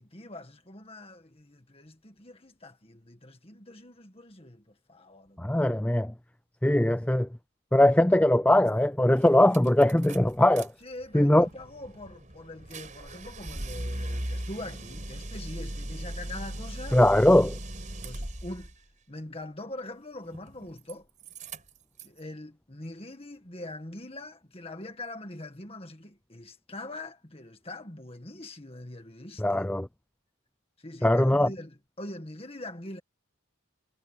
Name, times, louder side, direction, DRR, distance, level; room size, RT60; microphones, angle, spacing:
voice 1, 0.0-5.5 8.2-8.3 10.8-17.0 18.0-18.7 19.1-21.1 22.0-29.6 30.8-33.0, left 1 dB, 25° left, 1.9 m, -43 dB
voice 2, 5.4-6.1 6.6-7.3 7.7-10.7 11.1-11.5 16.9-17.6 29.4-29.9 31.0-31.5, left 1 dB, 5° left, 0.4 m, -21 dB
sound 1, 8.7-8.8 9.1-10.7 11.0-18.7 20.2-20.9 21.2-22.2, right 1 dB, 35° right, 5.0 m, -38 dB
head